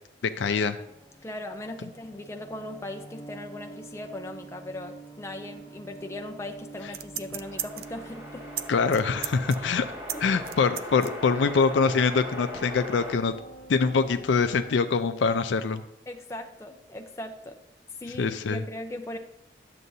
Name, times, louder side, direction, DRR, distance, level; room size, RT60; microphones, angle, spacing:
voice 1, 0.2-0.8 8.7-9.9 10.2-13.3 13.7-15.8 18.2-18.6, left 5 dB, 75° left, 9 dB, 0.4 m, -24 dB
sound 1, 0.6-14.7, right 2 dB, 30° left, 1.1 m, -48 dB
voice 2, 1.2-8.5 9.6-9.7 10.1-10.2 16.1-17.6 18.0-19.2, left 1 dB, 15° left, 4 dB, 0.5 m, -39 dB
sound 2, 6.8-8.0 8.5-8.6 8.9-11.1 11.5-11.6, right 11 dB, 55° right, 0.4 m, -35 dB
sound 3, 7.4-13.1, equal, 35° right, 1.8 m, -40 dB
11.0 x 7.6 x 2.7 m, 0.85 s
head